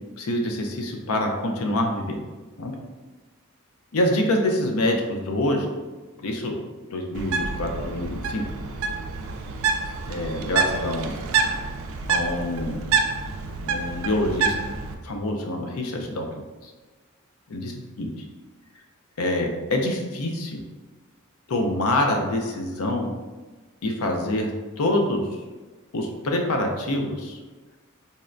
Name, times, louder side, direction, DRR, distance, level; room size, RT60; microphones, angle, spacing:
voice 1, 0.2-2.2 2.6-2.7 3.9-5.7 6.2-6.6 6.9-8.5 10.1-11.2 12.1-12.8 13.7-14.5 15.0-16.3 16.6-16.7 17.5-18.1 19.2-20.6 21.5-23.1 23.8-24.5 24.8-25.2 25.9-27.4, left 1 dB, 70° left, 2 dB, 0.5 m, -26 dB
Bird, 7.1-14.9, right 5 dB, 65° right, 0.3 m, -27 dB
4.1 x 2.1 x 2.4 m, 1.3 s
head